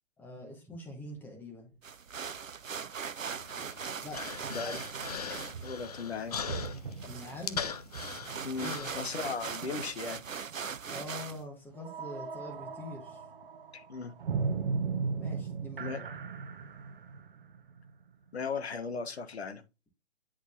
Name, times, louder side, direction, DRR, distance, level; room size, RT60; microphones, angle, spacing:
voice 1, 0.2-1.7 4.0-4.2 7.1-7.6 8.6-8.9 10.9-13.2 15.2-16.1, left 1 dB, 5° left, 1.4 m, -44 dB
sound 1, 1.1-1.2 4.4-10.2 10.5-10.8 11.7-18.4, right 5 dB, 45° right, 0.7 m, -39 dB
sound 2, 1.8-11.4, right 6 dB, 90° right, 0.5 m, -41 dB
Human voice, 3.3-9.6, left 6 dB, 30° left, 0.5 m, -41 dB
voice 2, 5.6-6.4 8.4-10.2 13.7-14.1 15.8-16.0 18.3-19.6, left 5 dB, 55° left, 1.1 m, -37 dB
9.9 x 4.1 x 2.5 m
figure-of-eight pair, 130°, 38 cm